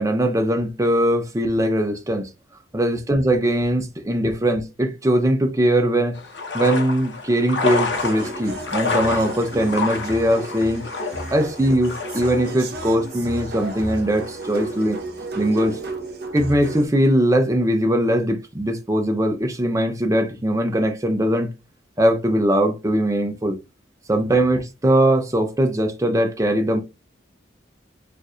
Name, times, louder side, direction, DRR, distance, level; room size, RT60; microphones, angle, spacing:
voice 1, 0.0-2.3 2.7-6.2 6.5-10.9 11.3-15.0 15.4-15.8 16.3-21.5 22.0-23.6 24.1-26.8, right 1 dB, 15° right, 0.6 m, -20 dB
sound 1, 6.1-14.9, left 4 dB, 70° left, 0.9 m, -30 dB
sound 2, 7.7-16.9, right 2 dB, 55° right, 0.8 m, -33 dB
4.4 x 2.6 x 2.4 m
head